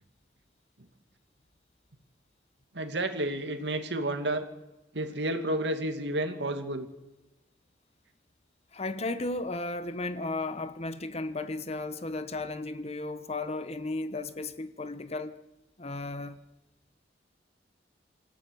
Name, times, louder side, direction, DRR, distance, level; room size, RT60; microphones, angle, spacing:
voice 1, 2.7-4.5 4.9-6.9, right 1 dB, 75° right, 2.3 m, -31 dB
voice 2, 8.7-15.4 15.8-16.4, left 2 dB, 35° left, 1.1 m, -34 dB
27.0 x 15.5 x 7.0 m
head